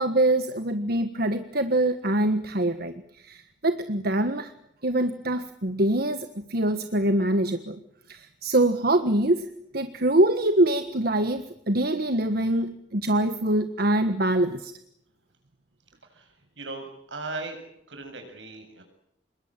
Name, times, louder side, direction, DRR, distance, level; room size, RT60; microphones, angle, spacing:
voice 1, 0.0-4.5 4.8-7.8 8.1-14.7, right 1 dB, 55° right, 9 dB, 1.5 m, -24 dB
voice 2, 16.0-17.6 17.9-18.8, right 3 dB, 80° right, 6 dB, 7.7 m, -38 dB
27.0 x 22.0 x 9.0 m, 0.78 s
head